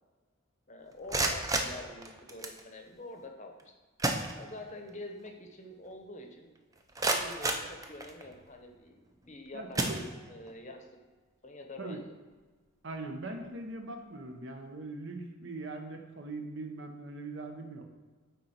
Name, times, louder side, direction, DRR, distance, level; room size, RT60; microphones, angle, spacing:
voice 1, 0.7-3.6 4.4-6.5 7.0-9.0 9.3-10.0 10.3-10.8 11.4-12.0, left 1 dB, 35° left, 4 dB, 0.8 m, -46 dB
sound 1, 0.9-2.6 3.6-3.7 4.0-4.9 5.3-5.4 5.9-6.0 6.6-8.4 9.1-9.3 9.7-10.6, right 2 dB, 15° right, 0.5 m, -33 dB
voice 2, 9.5-10.0 11.8-12.0 12.8-17.9, right 2 dB, 60° right, 4 dB, 0.9 m, -41 dB
9.4 x 3.9 x 4.2 m, 1.4 s
head